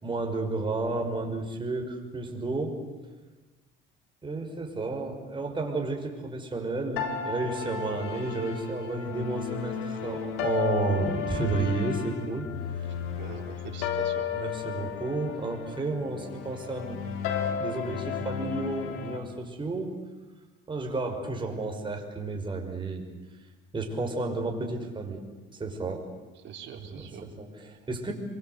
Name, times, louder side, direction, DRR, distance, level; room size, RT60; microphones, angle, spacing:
voice 1, 0.0-2.8 4.2-12.5 14.3-17.0 17.5-19.9 20.7-23.0 23.7-25.2 25.6-26.0 26.7-28.1, right 3 dB, 25° right, 2 dB, 5.7 m, -32 dB
sound 1, 7.0-19.2, left 8 dB, 80° left, 3.2 m, -33 dB
voice 2, 13.2-14.3 26.4-27.3, right 8 dB, 60° right, 3 dB, 4.0 m, -43 dB
27.5 x 23.5 x 8.2 m, 1.2 s
cardioid pair, 95°, 21 cm